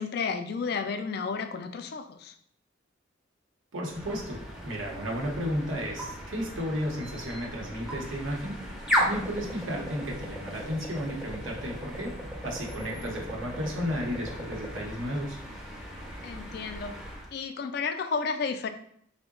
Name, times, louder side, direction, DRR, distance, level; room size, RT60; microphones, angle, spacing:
voice 1, 0.0-2.3 12.9-13.1 16.2-16.9 17.3-18.7, left 5 dB, 55° left, 8 dB, 0.3 m, -32 dB
voice 2, 3.7-4.4 4.6-8.6 9.0-15.4, equal, 80° right, -1 dB, 0.8 m, -33 dB
sound 1, 3.9-17.3, equal, 5° right, 0.5 m, -36 dB
3.7 x 2.1 x 3.6 m, 0.68 s
head